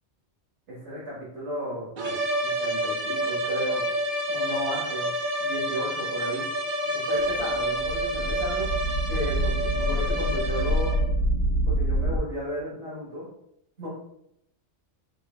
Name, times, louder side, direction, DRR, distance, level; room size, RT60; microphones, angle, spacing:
voice 1, 0.7-1.9 2.4-3.9 4.3-5.1 5.4-6.4 7.1-11.0 11.7-13.3 13.8-13.9, equal, 80° right, -8 dB, 1.7 m, -34 dB
sound 1, 2.0-11.2, equal, 50° right, 0.7 m, -29 dB
sound 2, 7.2-12.2, right 1 dB, 90° left, 1.0 m, -26 dB
4.9 x 2.3 x 3.2 m, 0.76 s
omnidirectional pair, 1.2 m